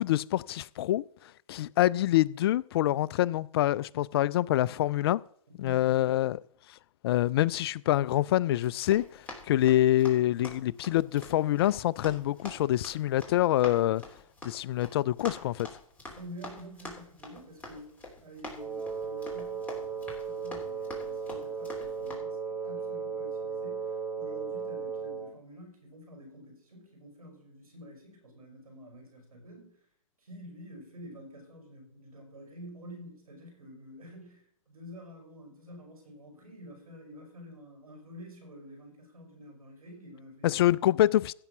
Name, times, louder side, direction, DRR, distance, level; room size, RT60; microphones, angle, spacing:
voice 1, 0.0-5.2 5.6-6.4 6.7-6.8 7.0-14.0 14.4-15.7 40.4-41.3, left 13 dB, 45° left, 0.4 m, -26 dB
voice 2, 5.5-6.1 12.6-12.7 16.1-29.8 30.2-41.1, equal, 90° right, 5.8 m, -49 dB
Run, 8.5-22.2, left 2 dB, 10° left, 3.2 m, -47 dB
Wind instrument woodwind instrument, 18.6-25.3, right 5 dB, 10° right, 1.0 m, -36 dB
15.5 x 5.5 x 6.0 m
hypercardioid pair, 130°, 18 cm